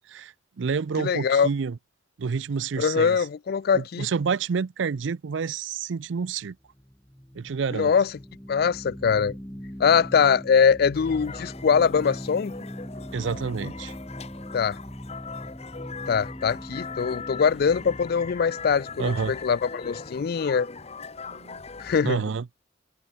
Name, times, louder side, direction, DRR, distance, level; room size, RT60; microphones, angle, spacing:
voice 1, 0.0-1.8 2.2-3.2 3.7-6.6 7.3-7.9 13.1-13.9 19.0-19.3 21.3-21.6 22.0-22.5, right 5 dB, 75° right, 0.5 m, -29 dB
voice 2, 1.0-1.5 2.8-4.1 7.7-8.1 8.5-9.4 9.8-12.5 14.5-14.8 16.1-20.7 21.8-22.2, left 6 dB, 55° left, 0.4 m, -22 dB
sound 1, 6.6-19.9, equal, 10° left, 2.4 m, -41 dB
sound 2, 10.9-22.0, left 4 dB, 35° left, 1.1 m, -40 dB
head